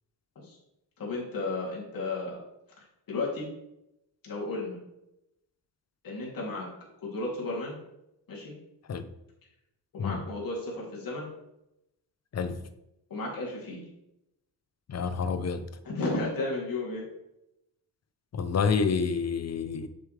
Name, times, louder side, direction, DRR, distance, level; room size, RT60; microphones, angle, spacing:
voice 1, 1.0-2.4 3.1-3.5 4.2-4.8 6.0-6.7 7.0-7.8 8.3-8.6 9.9-11.3 13.1-13.9 15.8-17.0, left 2 dB, 55° left, -3 dB, 3.0 m, -33 dB
voice 2, 14.9-15.7 18.3-19.9, left 5 dB, 40° left, 11 dB, 0.7 m, -28 dB
7.4 x 6.9 x 3.3 m, 0.86 s
cardioid pair, 105°, 40 cm